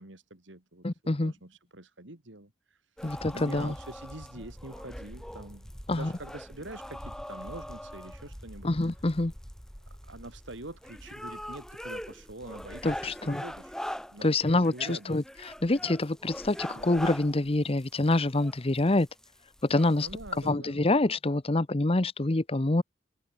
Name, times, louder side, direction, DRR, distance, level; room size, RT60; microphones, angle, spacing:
voice 1, 0.0-3.1 3.3-8.7 9.9-13.8 14.1-15.2 16.6-16.9 20.0-20.9, right 2 dB, 70° right, 3.0 m, -46 dB
voice 2, 0.8-1.3 3.0-3.7 5.9-6.1 8.6-9.3 12.8-13.4 14.2-19.1 19.6-20.1 20.4-22.8, left 2 dB, 30° left, 0.9 m, -26 dB
sound 1, 3.0-20.5, equal, 5° left, 2.5 m, -42 dB
head